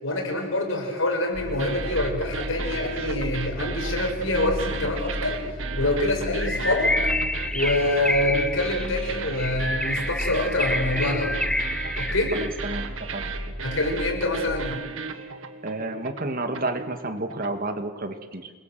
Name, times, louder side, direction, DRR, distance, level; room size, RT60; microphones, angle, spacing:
voice 1, 0.0-5.4 5.7-6.9 7.5-11.4 12.0-12.3 13.6-14.8, left 1 dB, 70° left, 3 dB, 6.2 m, -26 dB
sound 1, 1.3-14.7, equal, 15° right, 4.4 m, -34 dB
sound 2, 1.5-17.6, right 5 dB, 70° right, 1.9 m, -36 dB
Bird, 6.4-12.7, left 1 dB, 5° left, 0.8 m, -28 dB
voice 2, 12.3-13.3 15.6-18.5, right 2 dB, 45° right, 7 dB, 1.9 m, -31 dB
28.0 x 21.5 x 7.7 m, 1.4 s
head